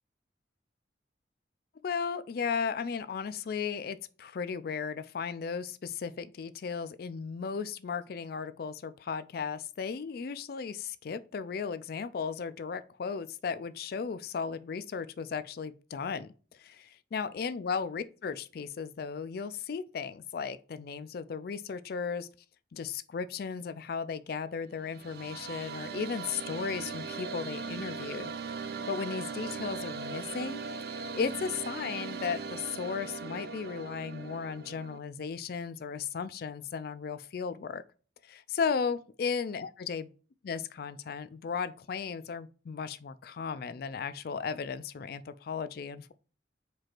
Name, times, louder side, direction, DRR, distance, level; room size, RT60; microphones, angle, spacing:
voice 1, 1.8-22.3 22.7-28.3 28.9-37.8 38.2-40.1 40.4-46.1, left 6 dB, 55° left, 0.3 m, -35 dB
sound 1, 24.7-35.0, right 5 dB, 55° right, 0.4 m, -39 dB
4.6 x 2.5 x 4.3 m
head